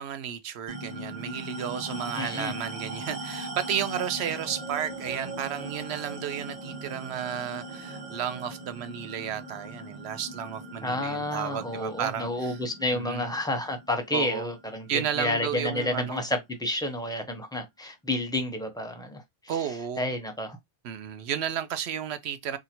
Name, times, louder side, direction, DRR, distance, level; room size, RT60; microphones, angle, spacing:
voice 1, 0.0-12.6 12.9-13.3 14.1-14.5 14.9-16.3 19.5-20.1 20.8-22.6, right 9 dB, 75° right, 0.9 m, -33 dB
sound 1, 0.7-15.5, right 2 dB, 40° right, 1.3 m, -40 dB
voice 2, 2.2-2.5 10.8-19.5 20.0-20.6, left 1 dB, 5° left, 0.6 m, -30 dB
2.8 x 2.4 x 4.2 m
omnidirectional pair, 1.1 m